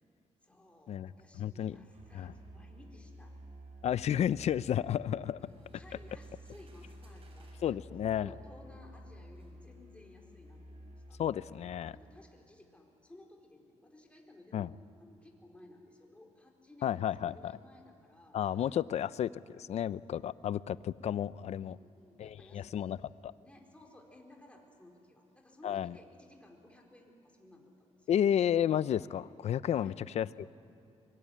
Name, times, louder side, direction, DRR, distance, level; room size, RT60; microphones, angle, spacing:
voice 1, 0.4-3.3 5.4-11.2 11.9-19.0 21.6-23.0 23.4-28.1 29.7-30.0 30.3-30.6, left 1 dB, 10° left, 1 dB, 4.5 m, -57 dB
voice 2, 1.4-1.8 2.1-2.3 3.8-5.4 7.6-8.3 11.2-12.0 14.5-14.7 16.8-17.6 18.3-21.8 22.2-23.0 23.2-23.3 25.6-25.9 28.1-30.5, left 10 dB, 65° left, 17 dB, 0.6 m, -32 dB
Musical instrument, 1.9-11.8, equal, 75° right, 5.6 m, -52 dB
sound 1, 5.5-7.7 8.6-8.7 9.4-9.5, right 3 dB, 55° right, 5.9 m, -67 dB
24.0 x 23.0 x 9.9 m, 2.8 s
cardioid pair, 105°, 12 cm